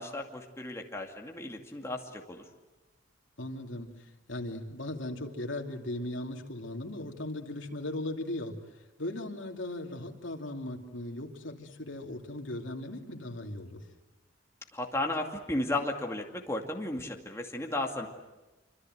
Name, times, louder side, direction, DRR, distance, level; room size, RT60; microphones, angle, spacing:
voice 1, 0.0-2.4 14.7-18.1, left 1 dB, 15° left, 1 dB, 2.4 m, -34 dB
voice 2, 3.4-8.6 9.0-13.8, left 1 dB, 75° left, 1 dB, 2.9 m, -38 dB
26.0 x 25.5 x 7.9 m, 1.1 s
head